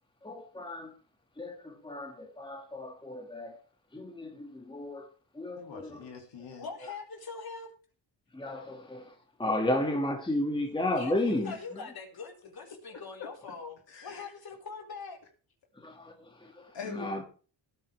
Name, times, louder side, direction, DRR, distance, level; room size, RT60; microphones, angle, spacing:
voice 1, 0.2-0.9 1.4-3.5 3.9-5.1 5.4-6.0 8.3-9.0 9.4-11.5 15.8-16.1 16.4-17.2, left 1 dB, 10° left, 2.1 m, -33 dB
voice 2, 5.6-6.7 11.5-11.6 13.9-14.3 16.7-17.2, left 5 dB, 70° left, 2.6 m, -44 dB
voice 3, 6.6-7.7 10.9-15.2, left 4 dB, 55° left, 4.2 m, -42 dB
17.5 x 8.9 x 3.4 m
cardioid pair, 100°, 45 cm